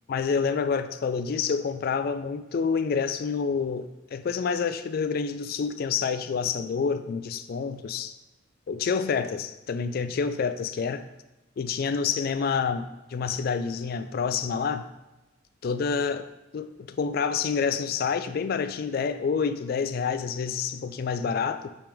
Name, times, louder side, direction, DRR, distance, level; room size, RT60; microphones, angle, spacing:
voice 1, 0.1-8.1 8.7-11.0 11.6-14.9 15.6-16.3 16.5-21.7, left 5 dB, 50° left, 11 dB, 0.3 m, -28 dB
8.5 x 3.5 x 3.4 m, 0.98 s
head